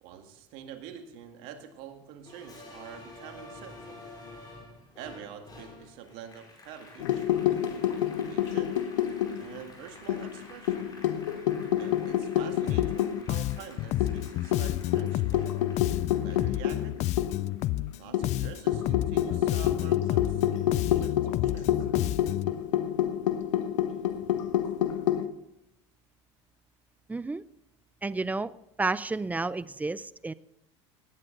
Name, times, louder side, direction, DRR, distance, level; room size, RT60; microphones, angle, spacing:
voice 1, 0.0-4.1 5.0-7.3 8.1-8.8 9.4-10.9 11.8-15.5 16.2-17.2 18.0-21.7, right 8 dB, 65° right, 6 dB, 1.9 m, -46 dB
Applause, 2.3-19.1 19.5-20.6, left 2 dB, 25° left, 5.0 m, -51 dB
sound 1, 7.0-9.7 10.1-13.2 13.5-13.6 14.0-17.5 18.1-25.3, left 11 dB, 85° left, 1.0 m, -28 dB
Bass guitar, 12.7-13.0 13.3-18.0 18.2-22.6, left 16 dB, 45° left, 0.4 m, -31 dB
voice 2, 27.1-27.4 28.0-28.5 28.8-30.3, right 3 dB, 10° right, 18 dB, 0.5 m, -31 dB
18.0 x 9.9 x 3.9 m, 0.82 s
supercardioid pair, 100°, 16 cm